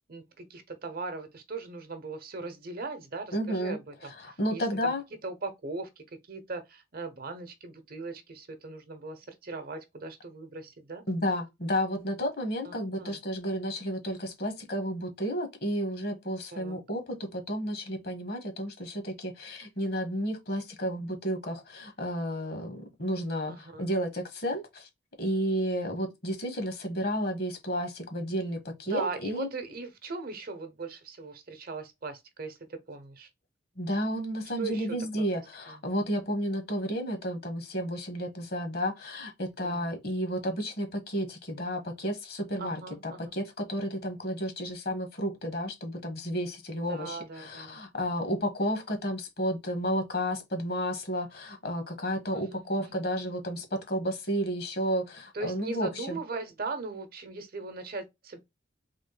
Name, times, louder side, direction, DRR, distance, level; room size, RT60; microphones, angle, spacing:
voice 1, 0.1-4.9 5.2-11.0 12.6-13.2 16.5-16.8 23.5-23.9 28.9-33.3 34.6-35.0 35.7-35.8 39.6-39.9 42.6-43.3 46.9-48.4 52.3-53.1 55.3-58.4, right 3 dB, 50° right, 0.9 m, -39 dB
voice 2, 3.3-3.8 4.2-5.0 11.1-24.9 25.2-29.5 33.8-56.2, equal, 55° left, 1.4 m, -32 dB
3.7 x 3.1 x 3.8 m
head